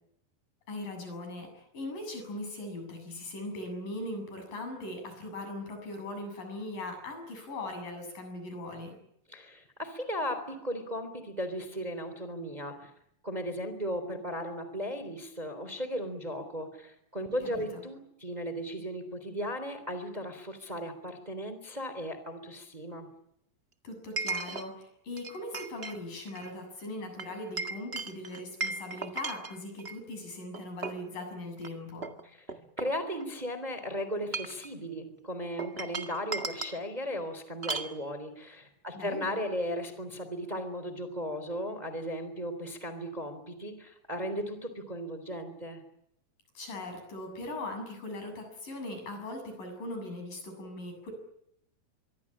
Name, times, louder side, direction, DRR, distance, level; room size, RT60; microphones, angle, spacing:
voice 1, 0.7-9.0 17.6-17.8 23.8-32.1 39.0-39.3 46.6-51.1, left 1 dB, 65° left, 6 dB, 9.2 m, -40 dB
voice 2, 9.3-12.9 13.2-23.1 32.8-45.8, equal, 10° right, 10 dB, 3.2 m, -36 dB
Chink clink, 20.7-20.8 24.2-24.7 25.2-26.0 26.3-26.5 27.2-30.0 30.5-31.1 31.6-31.7 32.0-33.4 34.1-34.7 35.6-36.8 37.6-37.9, right 3 dB, 35° right, 0.9 m, -36 dB
25.5 x 23.0 x 8.7 m, 0.77 s
omnidirectional pair, 4.1 m